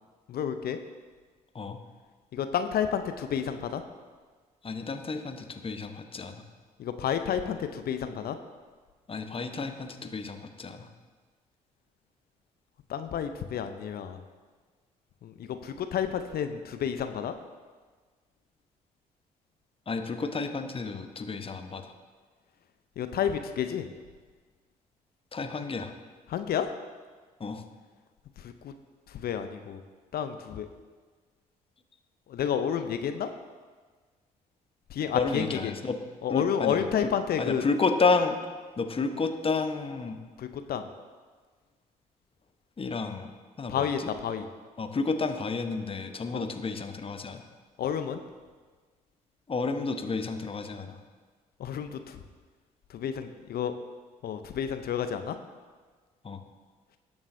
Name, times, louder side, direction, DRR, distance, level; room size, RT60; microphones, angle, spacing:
voice 1, 0.3-0.8 2.3-3.8 6.8-8.4 12.9-14.2 15.2-17.3 23.0-23.9 26.3-26.7 28.4-28.7 29.1-29.8 30.1-30.7 32.3-33.3 34.9-35.7 36.2-37.6 40.4-40.9 43.7-44.5 46.3-46.5 47.8-48.2 51.6-52.2 52.9-53.7 54.2-55.4, left 8 dB, 50° left, 9 dB, 0.7 m, -30 dB
voice 2, 4.6-6.4 9.1-10.9 19.9-21.9 25.3-25.9 27.4-27.6 35.1-36.0 36.3-36.9 37.4-38.4 38.8-40.2 42.8-43.3 43.6-44.1 44.8-47.4 49.5-51.0 56.2-56.4, left 4 dB, 30° left, 6 dB, 1.1 m, -31 dB
18.0 x 7.2 x 2.7 m, 1.5 s
figure-of-eight pair, 45°, 20 cm